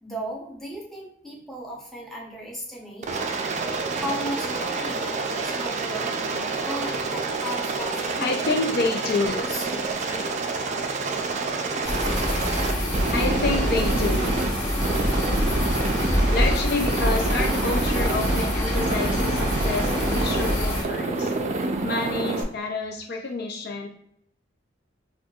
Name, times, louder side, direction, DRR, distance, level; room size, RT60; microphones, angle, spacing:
voice 1, 0.0-3.2 3.9-8.6 9.0-10.3 14.6-14.8, equal, ahead, -4 dB, 0.8 m, -36 dB
Aircraft, 3.0-14.5 14.8-16.6 16.8-18.5 18.7-20.5 20.8-22.4, right 3 dB, 40° right, 0.4 m, -28 dB
voice 2, 7.9-9.4 12.8-14.3 14.6-15.0 16.3-23.9, left 3 dB, 55° left, 2 dB, 0.5 m, -29 dB
sound 1, 11.8-20.8, equal, 25° left, 1.4 m, -25 dB
4.3 x 2.4 x 2.3 m, 0.70 s
head